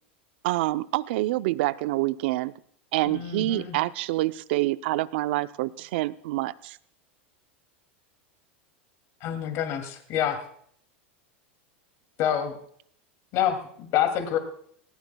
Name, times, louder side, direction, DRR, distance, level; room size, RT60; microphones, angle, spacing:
voice 1, 0.4-2.5 2.9-6.8, right 17 dB, 70° right, 15 dB, 0.6 m, -27 dB
voice 2, 3.0-3.8 9.2-10.4 12.2-12.6 13.3-14.4, left 10 dB, 50° left, 7 dB, 2.5 m, -27 dB
19.5 x 17.5 x 2.3 m, 0.62 s
hypercardioid pair, 110°, 6 cm